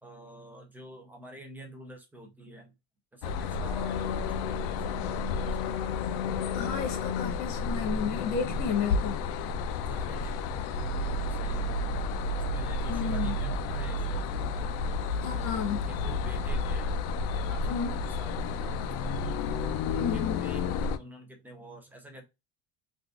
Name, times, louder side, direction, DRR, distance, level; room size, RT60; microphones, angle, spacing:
voice 1, 0.0-2.7 3.1-5.8 9.9-12.0 12.3-14.8 15.2-16.9 17.3-17.7 18.0-19.1 19.6-22.2, right 1 dB, 5° right, 0.3 m, -48 dB
sound 1, 3.2-21.0, left 3 dB, 65° left, 0.5 m, -31 dB
voice 2, 6.5-9.2 12.9-13.4 15.2-15.9 17.7-17.9 19.9-20.5, left 6 dB, 85° left, 1.1 m, -32 dB
3.5 x 2.5 x 2.3 m
cardioid pair, 175°, 34 cm